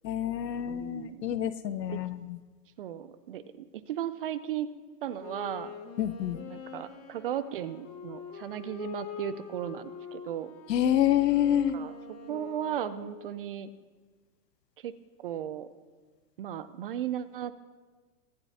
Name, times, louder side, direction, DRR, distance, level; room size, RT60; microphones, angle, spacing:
voice 1, 0.0-2.4 6.0-6.4 10.7-11.8, left 11 dB, 80° left, 13 dB, 0.9 m, -27 dB
voice 2, 0.7-1.4 1.9-2.0 2.8-4.7 5.0-5.7 6.5-10.5 11.7-11.9 12.3-13.7 14.8-14.9 15.2-15.7 16.4-17.5, right 10 dB, 40° right, 14 dB, 0.4 m, -36 dB
Wind instrument woodwind instrument, 5.1-13.5, left 6 dB, 55° left, 2.0 m, -44 dB
23.5 x 9.9 x 2.8 m, 1.4 s
hypercardioid pair, 135°, 48 cm